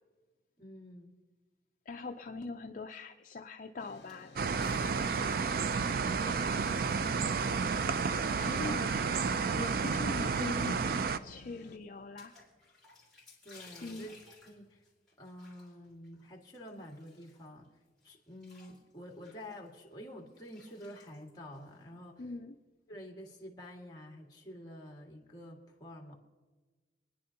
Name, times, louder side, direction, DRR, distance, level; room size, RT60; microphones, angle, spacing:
voice 1, 0.6-1.2 8.3-8.9 13.4-14.8 15.2-17.7 18.0-22.3 22.9-26.2, equal, 20° left, 0 dB, 2.0 m, -49 dB
voice 2, 1.9-6.0 8.4-12.4 13.8-14.1 22.2-22.6, left 3 dB, 45° left, 4 dB, 0.5 m, -43 dB
sound 1, 3.8-11.8, left 2 dB, 65° left, 0.8 m, -53 dB
sound 2, 3.9-4.8 5.0-8.9 9.5-10.5 10.8-10.9 11.1-11.2 12.2-17.6 18.0-22.0, left 3 dB, 5° left, 3.3 m, -59 dB
sound 3, 4.4-11.2, right 5 dB, 55° right, 0.4 m, -31 dB
26.5 x 10.0 x 2.9 m, 1.3 s
head